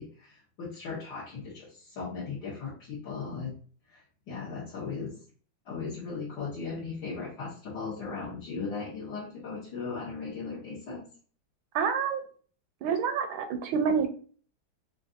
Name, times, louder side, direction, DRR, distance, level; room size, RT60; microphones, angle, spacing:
voice 1, 0.0-3.5 3.9-4.0 4.3-5.2 5.7-11.0, left 4 dB, 65° left, -8 dB, 1.7 m, -37 dB
voice 2, 11.7-12.2 12.8-14.1, right 6 dB, 80° right, 7 dB, 1.4 m, -27 dB
5.1 x 2.5 x 2.5 m, 0.42 s
omnidirectional pair, 2.2 m